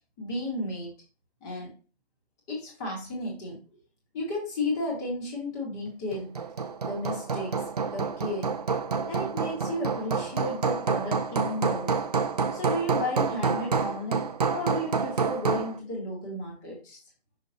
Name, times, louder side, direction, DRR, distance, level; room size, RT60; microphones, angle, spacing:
voice 1, 0.2-0.9 1.4-1.7 2.5-3.6 4.1-6.4 6.8-7.6 7.9-8.6 9.1-11.9 12.5-17.0, left 1 dB, 15° left, -2 dB, 1.9 m, -33 dB
Hammer, 6.1-15.8, right 5 dB, 40° right, 0.5 m, -28 dB
6.3 x 5.6 x 2.9 m, 0.34 s
hypercardioid pair, 160°, 33 cm